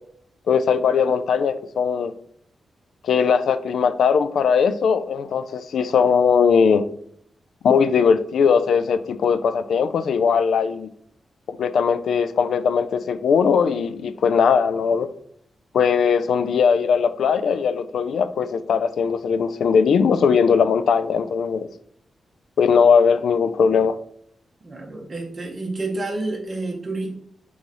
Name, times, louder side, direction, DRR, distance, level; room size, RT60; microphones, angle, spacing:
voice 1, 0.5-2.1 3.0-6.8 7.6-10.9 11.5-15.1 15.7-21.7 22.6-24.0, left 6 dB, 80° left, 12 dB, 0.3 m, -19 dB
voice 2, 24.6-27.1, right 2 dB, 30° right, -1 dB, 0.8 m, -29 dB
3.8 x 3.1 x 4.0 m, 0.67 s
wide cardioid pair, 175°, 0 cm